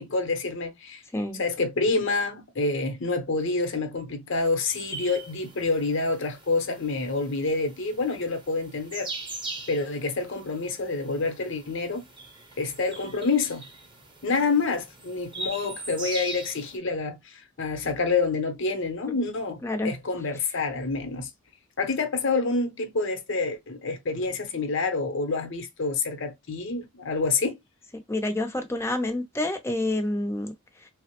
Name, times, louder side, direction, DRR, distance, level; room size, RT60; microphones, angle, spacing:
voice 1, 0.0-1.0 1.3-9.1 9.7-12.0 12.6-13.6 14.2-21.3 21.8-27.6, left 3 dB, 60° left, 0.8 m, -27 dB
sound 1, 4.7-16.8, right 2 dB, 20° right, 0.8 m, -41 dB
voice 2, 28.1-30.5, left 1 dB, 10° left, 0.6 m, -28 dB
3.5 x 2.0 x 2.9 m
head